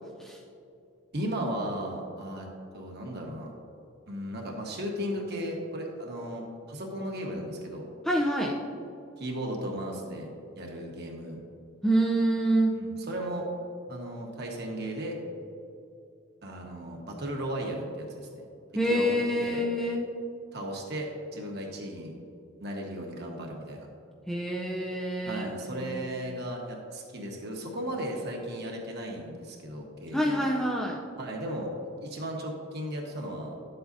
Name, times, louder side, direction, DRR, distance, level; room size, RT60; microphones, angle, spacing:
voice 1, 1.1-3.5 4.1-7.8 9.2-10.3 10.6-11.4 12.7-13.5 13.9-15.2 16.4-18.5 18.9-19.1 19.4-19.6 20.5-22.1 22.6-23.9 25.3-30.4 31.2-31.7 32.0-33.5, right 1 dB, 50° right, 0 dB, 1.3 m, -35 dB
voice 2, 8.0-8.5 11.8-12.7 18.8-20.0 24.3-25.4 25.8-26.0 30.1-31.0, right 1 dB, ahead, -2 dB, 0.5 m, -26 dB
11.0 x 7.8 x 2.7 m, 2.6 s
head